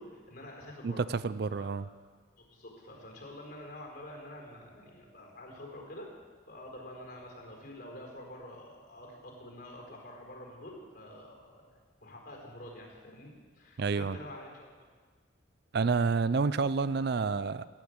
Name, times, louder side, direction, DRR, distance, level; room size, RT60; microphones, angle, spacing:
voice 1, 0.0-1.0 1.5-1.7 2.4-6.1 6.5-14.7, left 1 dB, 50° left, 0 dB, 4.5 m, -47 dB
voice 2, 0.8-1.9 13.8-14.2 15.7-17.7, right 4 dB, 50° right, 15 dB, 0.4 m, -29 dB
16.5 x 10.0 x 8.1 m, 1.5 s
head